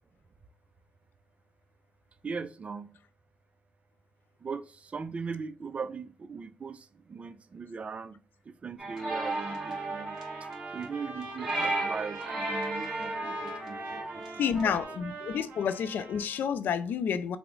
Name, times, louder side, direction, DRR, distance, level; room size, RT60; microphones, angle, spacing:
voice 1, 2.2-2.9 4.4-8.2 8.5-10.2 10.7-14.7, right 5 dB, 40° right, 0.3 m, -39 dB
sound 1, 8.8-14.8, right 2 dB, 15° right, 1.4 m, -35 dB
Trumpet, 9.1-16.4, right 3 dB, 70° right, 0.7 m, -42 dB
voice 2, 14.4-17.4, left 7 dB, 70° left, 0.3 m, -29 dB
3.4 x 2.0 x 3.1 m
cardioid pair, 70°, 3 cm